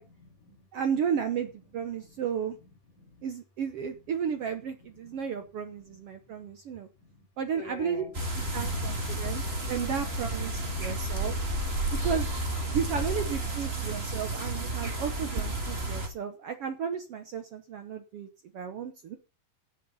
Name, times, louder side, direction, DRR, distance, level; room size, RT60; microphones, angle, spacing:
voice 1, 0.1-0.7 1.8-3.3 3.9-4.1 4.4-5.4 5.7-6.4 6.9-8.7 12.6-13.0 13.4-14.7, left 3 dB, 65° left, 3 dB, 5.4 m, -52 dB
voice 2, 0.7-2.6 3.2-6.9 7.4-8.0 8.4-9.4 9.7-11.4 11.9-12.3 12.7-18.3 18.5-19.2, right 7 dB, 70° right, 7 dB, 1.5 m, -33 dB
sound 1, 8.1-16.1, right 1 dB, 20° right, 2.2 m, -31 dB
17.0 x 6.7 x 5.6 m, 0.32 s
omnidirectional pair, 3.9 m